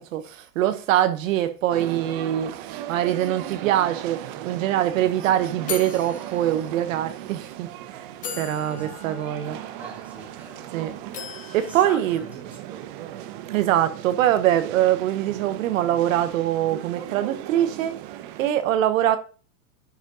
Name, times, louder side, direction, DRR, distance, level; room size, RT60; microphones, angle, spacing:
voice 1, 0.0-9.6 10.7-10.9 11.5-12.2 13.5-19.2, right 12 dB, 60° right, 1.0 m, -23 dB
sound 1, 1.7-18.5, right 12 dB, 35° right, 0.7 m, -38 dB
sound 2, 4.3-4.4 4.7-4.9 5.7-7.1 7.7-7.8 8.2-10.6 11.1-12.8, left 7 dB, 20° left, 0.9 m, -39 dB
voice 2, 8.7-9.3 9.6-11.1 11.6-12.8, right 1 dB, 5° right, 2.4 m, -44 dB
10.5 x 5.1 x 3.8 m
supercardioid pair, 150°, 45 cm